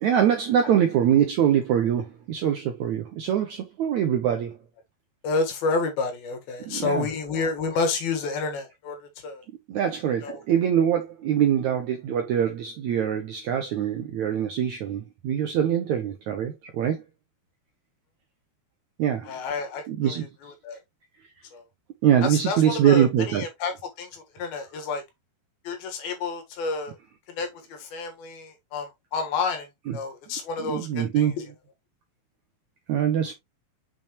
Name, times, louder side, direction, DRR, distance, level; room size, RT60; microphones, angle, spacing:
voice 1, 0.0-4.6 6.7-7.1 9.7-17.0 19.0-19.3 19.9-20.3 22.0-23.5 29.9-30.0 30.6-31.3 32.9-33.3, right 9 dB, 75° right, 1.7 m, -23 dB
voice 2, 5.2-9.4 10.2-10.4 19.3-20.8 21.5-21.6 22.2-25.0 25.6-27.0 27.4-29.7 29.9-31.4, left 4 dB, 70° left, 3.4 m, -30 dB
7.1 x 5.5 x 3.0 m
omnidirectional pair, 4.5 m